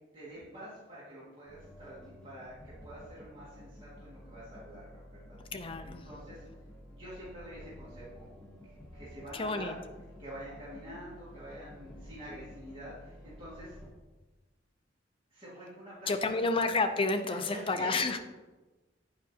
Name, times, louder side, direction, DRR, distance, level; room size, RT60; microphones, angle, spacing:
voice 1, 0.1-6.4 6.9-8.3 8.7-9.8 10.2-13.8 15.3-16.5 17.3-18.2, equal, 30° right, -10 dB, 2.0 m, -47 dB
sound 1, 1.5-13.9, equal, 5° left, 1.2 m, -51 dB
voice 2, 5.4-6.0 9.3-9.7 16.1-18.2, left 3 dB, 30° left, 7 dB, 0.5 m, -30 dB
8.6 x 5.1 x 2.8 m, 1.2 s
head